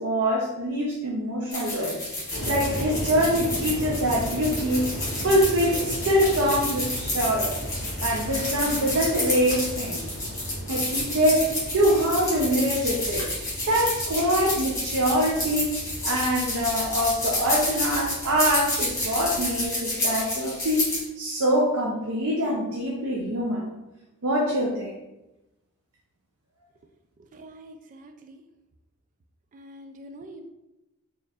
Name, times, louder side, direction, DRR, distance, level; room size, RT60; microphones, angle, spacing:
voice 1, 0.0-2.0 2.5-5.0 5.2-7.5 8.0-10.0 10.7-13.3 13.7-15.7 16.0-23.7 24.2-24.9, equal, 80° right, -2 dB, 0.6 m, -24 dB
sound 1, 1.5-21.0, left 1 dB, 15° left, 1.2 m, -30 dB
sound 2, 2.3-19.7, equal, 65° left, 1.4 m, -36 dB
voice 2, 27.2-28.4 29.5-30.5, right 1 dB, 35° right, 6 dB, 0.3 m, -45 dB
4.5 x 3.0 x 2.4 m, 0.96 s
head